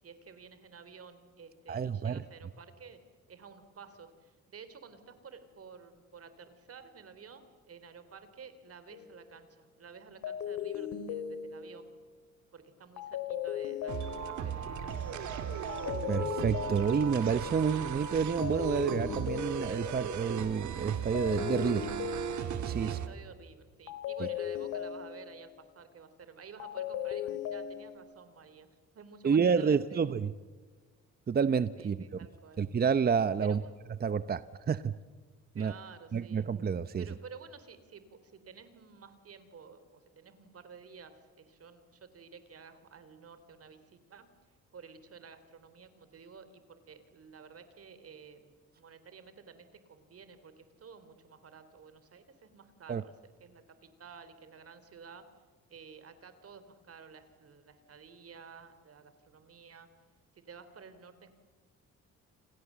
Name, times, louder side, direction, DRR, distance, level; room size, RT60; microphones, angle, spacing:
voice 1, 0.0-3.0 3.3-11.9 12.5-15.2 22.8-28.7 28.9-30.0 31.8-32.6 33.4-33.7 35.5-36.5 37.0-44.3 44.7-55.2 55.7-59.9 60.3-61.3, right 5 dB, 50° right, 11 dB, 3.4 m, -52 dB
voice 2, 1.7-2.2 16.1-21.9 22.6-23.0 24.2-24.3 29.2-30.3 31.3-32.0 32.6-33.6 34.0-35.0 35.6-35.7 36.1-37.1 52.9-53.0, right 6 dB, 30° right, 14 dB, 0.8 m, -29 dB
sound 1, 8.9-9.2 10.2-11.9 13.0-14.6 15.7-17.4 18.4-20.1 21.1-22.9 23.9-25.6 26.6-28.0, left 9 dB, 90° left, 2.6 m, -38 dB
sound 2, 13.9-23.1, right 7 dB, 75° right, 2.3 m, -37 dB
29.0 x 26.0 x 7.4 m, 1.4 s
cardioid pair, 90°, 30 cm